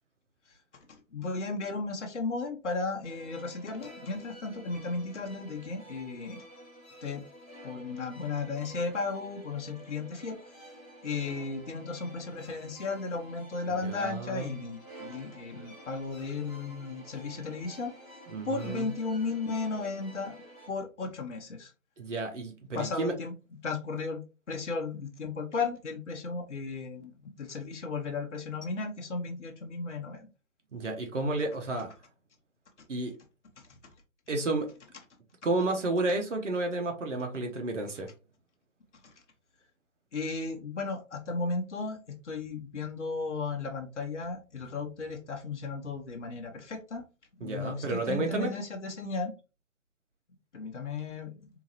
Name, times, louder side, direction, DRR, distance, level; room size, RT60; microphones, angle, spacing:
voice 1, 0.9-6.4 7.0-7.2 7.6-10.4 11.0-17.9 18.4-20.4 20.7-21.7 22.7-23.3 23.6-30.3 40.1-47.0 47.4-49.3 50.5-51.4, left 4 dB, 55° left, 0.9 m, -35 dB
sound 1, 3.0-20.7, right 1 dB, ahead, 1.0 m, -50 dB
voice 2, 13.7-14.5 18.3-18.9 22.0-23.1 30.7-31.9 32.9-33.1 34.3-34.7 35.4-38.1 47.4-48.5, right 2 dB, 60° right, 0.9 m, -31 dB
3.8 x 2.4 x 2.9 m
figure-of-eight pair, 155°, 41 cm